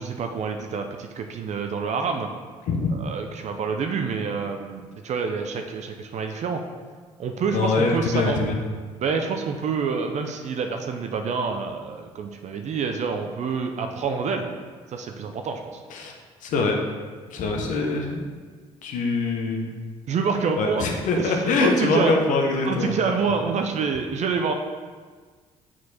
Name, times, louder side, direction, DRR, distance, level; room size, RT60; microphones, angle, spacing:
voice 1, 0.0-2.3 2.9-6.6 7.2-8.4 9.0-14.5 14.9-15.8 20.1-20.9 21.2-22.2 22.6-24.5, right 5 dB, 55° right, 5 dB, 0.6 m, -27 dB
voice 2, 7.5-8.6 15.9-16.1 16.4-16.7 17.3-18.2 18.8-19.7 20.6-23.0, left 3 dB, 65° left, 2 dB, 1.0 m, -23 dB
6.3 x 4.6 x 4.1 m, 1.5 s
hypercardioid pair, 55°, 14 cm